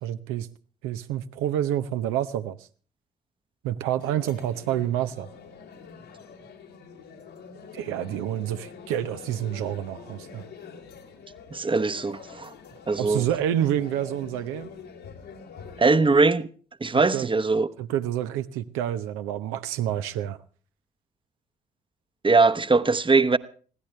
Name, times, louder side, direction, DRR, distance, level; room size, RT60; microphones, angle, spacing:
voice 1, 0.0-0.5 0.8-2.6 3.6-5.3 7.7-10.4 12.9-14.7 16.9-17.3 17.8-20.4, right 11 dB, 80° right, 0.8 m, -28 dB
sound 1, 4.0-15.8, left 6 dB, 80° left, 3.4 m, -45 dB
voice 2, 11.5-12.5 12.9-13.2 15.8-16.5 16.8-17.7 22.2-23.4, right 3 dB, 25° right, 1.0 m, -21 dB
22.0 x 16.0 x 3.3 m
hypercardioid pair, 45°, 21 cm